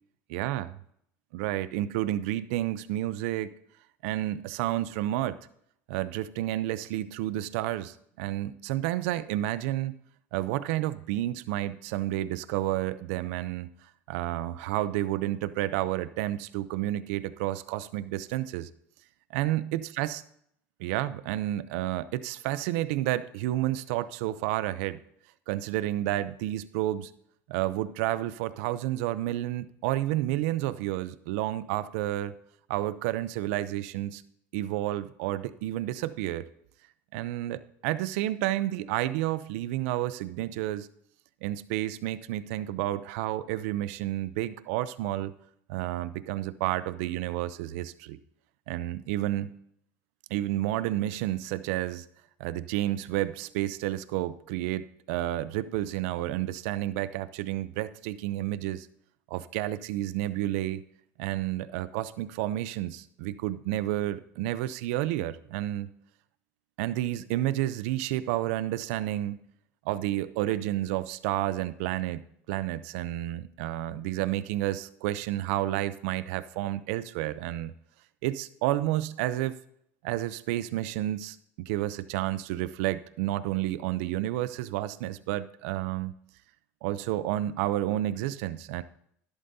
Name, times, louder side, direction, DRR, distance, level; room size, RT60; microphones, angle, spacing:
voice 1, 0.3-0.7 1.3-3.5 4.0-5.4 5.9-10.0 10.3-13.7 14.1-18.7 19.3-20.2 20.8-25.0 25.5-27.1 27.5-32.3 32.7-34.2 34.5-36.5 37.1-40.9 41.4-45.3 45.7-48.2 48.7-49.5 50.3-52.1 52.4-58.9 59.3-60.8 61.2-65.9 66.8-69.4 69.9-72.2 72.5-77.7 78.2-79.6 80.0-86.1 86.8-88.8, right 14 dB, 75° right, 15 dB, 0.6 m, -30 dB
11.5 x 11.0 x 2.7 m, 0.71 s
supercardioid pair, 95°, 8 cm